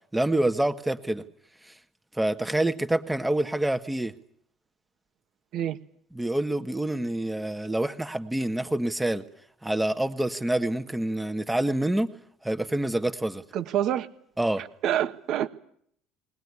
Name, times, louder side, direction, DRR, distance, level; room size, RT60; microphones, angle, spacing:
voice 1, 0.1-1.2 1.6-1.7 2.1-4.1 6.1-9.2 9.6-12.1 12.4-13.4 14.4-14.6, right 1 dB, 10° right, 8 dB, 1.7 m, -27 dB
voice 2, 13.5-14.1 14.8-15.5, right 11 dB, 60° right, 10 dB, 1.6 m, -26 dB
20.0 x 19.5 x 9.9 m, 0.67 s
supercardioid pair, 80°, 0 cm